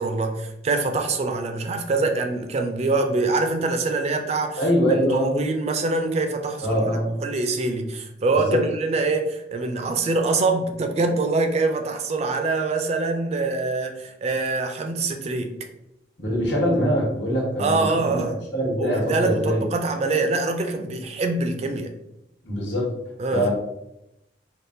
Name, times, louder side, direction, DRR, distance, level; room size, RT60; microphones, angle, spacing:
voice 1, 0.0-15.5 17.6-18.4 18.8-21.9 23.2-23.5, right 3 dB, 35° right, 5 dB, 0.3 m, -24 dB
voice 2, 4.6-5.4 6.6-7.1 8.3-8.6 16.2-18.2 18.5-19.6 22.4-22.9 23.3-23.5, equal, 80° left, -4 dB, 1.2 m, -23 dB
3.5 x 2.3 x 2.6 m, 0.87 s
head